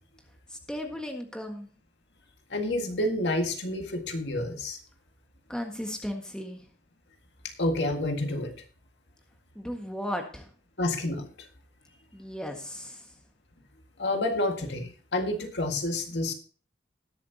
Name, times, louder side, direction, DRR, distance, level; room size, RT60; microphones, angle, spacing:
voice 1, 0.5-1.7 5.5-6.6 9.5-10.5 12.1-13.1, equal, 5° left, 2 dB, 1.7 m, -36 dB
voice 2, 2.5-4.8 7.6-8.5 10.8-11.3 14.0-16.3, left 1 dB, 75° left, 4 dB, 1.9 m, -29 dB
20.5 x 7.4 x 2.8 m, 0.39 s
head